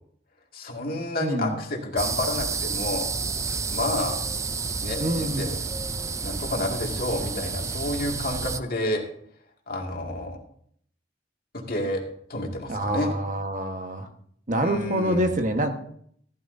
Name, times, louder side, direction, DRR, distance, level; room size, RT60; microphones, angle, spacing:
voice 1, 0.5-3.1 3.7-4.2 4.8-5.6 6.2-9.0 9.7-10.4 11.5-12.0 12.3-13.1 14.6-15.3, left 1 dB, 50° left, 0 dB, 2.3 m, -30 dB
voice 2, 1.2-1.6 5.0-5.5 12.7-14.1 14.5-15.7, right 1 dB, 40° right, 5 dB, 1.4 m, -26 dB
sound 1, 2.0-8.6, right 4 dB, 15° right, 0.4 m, -30 dB
14.0 x 13.5 x 2.7 m, 0.64 s
head